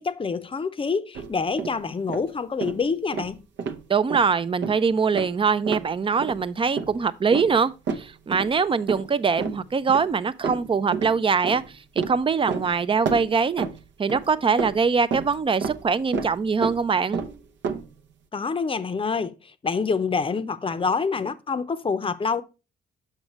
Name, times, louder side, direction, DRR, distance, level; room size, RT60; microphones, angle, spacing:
voice 1, 0.0-3.4 18.3-22.4, left 5 dB, 25° left, 0.7 m, -27 dB
sound 1, 1.2-1.8 2.1-2.3 2.6-2.8 3.1-3.8 4.1-4.3 4.6-4.8 5.1-5.4 5.7-5.9 6.2-6.4 6.8-7.0 7.3-8.6 8.9-9.1 9.4-10.1 10.4-11.2 11.4-12.7 13.1-14.3 14.6-15.9 16.1-16.4 16.6-16.9 17.1-17.9, right 5 dB, 65° right, 0.8 m, -30 dB
voice 2, 3.9-11.6 12.1-13.7 14.0-17.2, right 5 dB, 25° right, 0.5 m, -23 dB
6.5 x 6.3 x 3.0 m
cardioid pair, 90°, 20 cm